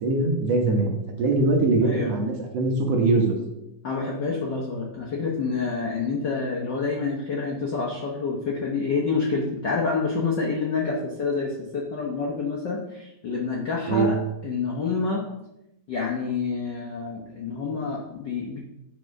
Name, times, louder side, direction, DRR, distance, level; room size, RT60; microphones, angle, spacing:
voice 1, 0.0-3.4 13.9-14.1, right 3 dB, 60° right, 2 dB, 2.2 m, -22 dB
voice 2, 3.8-14.2 14.4-15.3 15.9-18.6, left 4 dB, 60° left, -2 dB, 1.1 m, -28 dB
9.2 x 5.0 x 5.3 m, 0.90 s
omnidirectional pair, 3.5 m